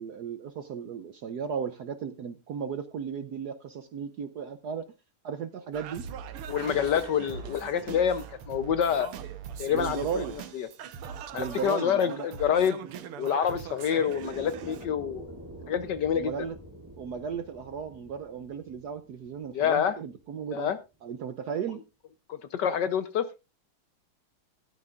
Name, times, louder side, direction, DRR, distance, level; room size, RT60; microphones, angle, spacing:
voice 1, 0.0-4.9 5.2-6.1 9.7-10.3 11.3-12.3 12.8-12.9 16.1-16.6 17.0-20.7 21.0-21.8, right 7 dB, 65° right, 10 dB, 1.0 m, -35 dB
Singing, 5.7-14.9, right 8 dB, 85° right, 2.0 m, -41 dB
voice 2, 6.5-9.1 9.6-10.3 10.5-10.7 11.3-12.8 13.2-15.3 15.7-16.3 19.5-19.9 20.5-20.8 22.3-23.3, left 8 dB, 65° left, 12 dB, 1.2 m, -27 dB
sound 1, 6.5-10.4 13.4-20.5, right 1 dB, 10° right, 2.1 m, -49 dB
13.5 x 13.0 x 2.5 m, 0.26 s
omnidirectional pair, 2.4 m